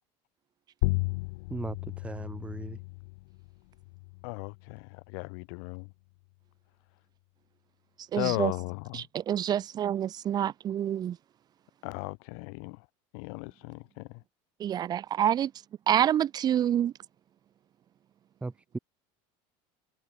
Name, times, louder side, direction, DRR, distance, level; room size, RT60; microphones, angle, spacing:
sound 1, 0.8-5.9, left 27 dB, 90° left, 5.8 m, -35 dB
voice 1, 1.5-2.8 18.4-18.8, right 3 dB, 10° right, 6.1 m, -37 dB
voice 2, 4.2-5.9 8.2-9.0 11.8-12.8 13.1-14.1, left 40 dB or more, 75° left, 7.7 m, -36 dB
voice 3, 8.1-8.5 8.9-11.2 14.6-15.5 15.9-16.9, right 10 dB, 30° right, 3.0 m, -27 dB
cardioid pair, 165°, 13 cm